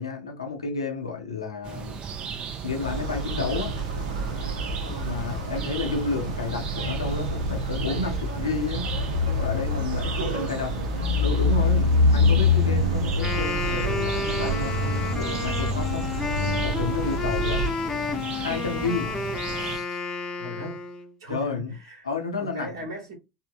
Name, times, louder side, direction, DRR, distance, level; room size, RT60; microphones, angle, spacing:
voice 1, 0.0-2.0 2.6-3.7 5.0-8.9 9.3-10.9 11.2-16.1 16.6-17.6 18.3-19.1 19.6-20.0 21.3-21.7 22.0-22.9, left 4 dB, 85° left, 0.7 m, -31 dB
sound 1, 1.6-19.8, right 7 dB, 35° right, 0.6 m, -36 dB
sound 2, 2.8-17.7, left 2 dB, 80° right, 0.6 m, -26 dB
voice 2, 10.0-10.6 20.4-20.8 21.2-22.1 22.4-23.1, right 2 dB, 60° right, 1.2 m, -37 dB
Wind instrument woodwind instrument, 13.1-21.1, left 4 dB, 25° left, 0.7 m, -31 dB
3.6 x 2.1 x 2.5 m
figure-of-eight pair, 75°, 3 cm